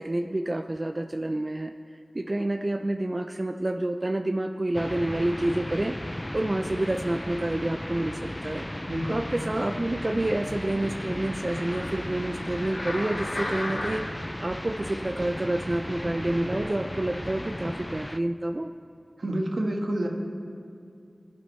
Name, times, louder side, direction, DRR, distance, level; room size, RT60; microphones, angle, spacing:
voice 1, 0.0-1.7 2.1-8.7 9.1-14.1 14.4-18.7, right 1 dB, 40° right, 5 dB, 0.5 m, -28 dB
sound 1, 4.7-18.2, left 1 dB, 15° left, 0.4 m, -35 dB
sound 2, 9.7-14.3 14.9-15.0, left 1 dB, 80° left, 2.9 m, -37 dB
voice 2, 19.2-20.1, right 1 dB, 75° right, 1 dB, 1.5 m, -28 dB
24.5 x 11.5 x 3.2 m, 2.4 s
wide cardioid pair, 60°, 0 cm